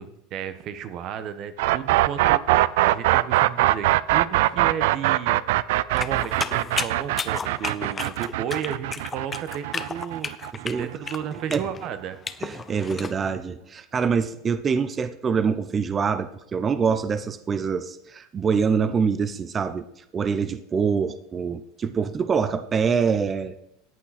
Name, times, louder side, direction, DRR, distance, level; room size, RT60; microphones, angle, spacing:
voice 1, 0.0-5.4 5.9-10.5 10.7-12.2, right 9 dB, 45° right, 11 dB, 1.1 m, -33 dB
sound 1, 1.6-11.4, right 16 dB, 75° right, 0.4 m, -22 dB
sound 2, 6.0-13.1, left 5 dB, 20° left, 0.7 m, -33 dB
voice 2, 12.4-19.9 20.1-23.6, right 6 dB, 25° right, 11 dB, 0.6 m, -25 dB
14.0 x 8.7 x 4.2 m, 0.78 s
supercardioid pair, 135°, 0 cm